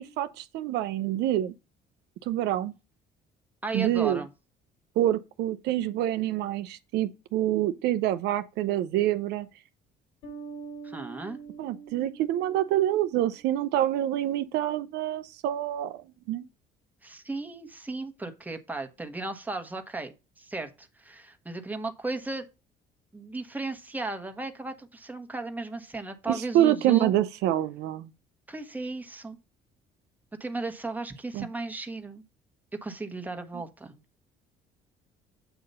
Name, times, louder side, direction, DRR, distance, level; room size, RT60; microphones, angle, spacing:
voice 1, 0.0-1.5 2.3-2.7 3.7-4.2 5.0-9.5 11.6-16.5 26.3-28.1 31.3-31.5, right 12 dB, 85° right, 0.6 m, -26 dB
voice 2, 3.6-4.3 10.8-11.4 17.0-22.5 23.1-27.2 28.5-29.4 30.4-32.2 32.8-34.0, right 3 dB, 10° right, 1.2 m, -35 dB
Bass guitar, 10.2-13.7, right 6 dB, 80° left, 2.9 m, -45 dB
7.9 x 2.9 x 5.4 m
cardioid pair, 110°, 17 cm